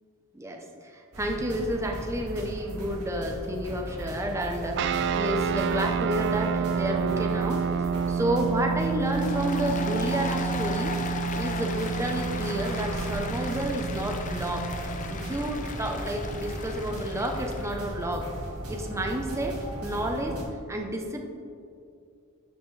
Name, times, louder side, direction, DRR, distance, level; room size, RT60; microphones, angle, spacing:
voice 1, 0.3-4.8 5.1-7.6 8.1-10.9 11.3-14.7 15.1-18.3 18.7-20.4 20.7-21.3, right 1 dB, 15° right, 1 dB, 0.7 m, -30 dB
sound 1, 1.1-20.4, right 1 dB, 75° right, 1.7 m, -37 dB
sound 2, 4.8-15.4, right 6 dB, 50° right, 0.3 m, -29 dB
Applause, 9.0-17.7, left 4 dB, 35° left, 0.5 m, -37 dB
12.0 x 5.8 x 3.3 m, 2.5 s
head